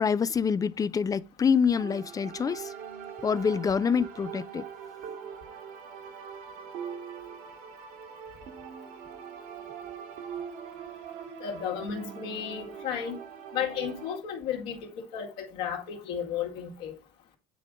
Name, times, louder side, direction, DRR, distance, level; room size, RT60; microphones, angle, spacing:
voice 1, 0.0-2.7 3.2-4.6, left 6 dB, 20° left, 0.5 m, -26 dB
sound 1, 1.7-14.2, right 7 dB, 65° right, 1.9 m, -42 dB
voice 2, 11.4-13.2 13.5-16.9, left 8 dB, 70° left, 2.1 m, -33 dB
9.1 x 3.6 x 5.1 m
supercardioid pair, 90°, 16 cm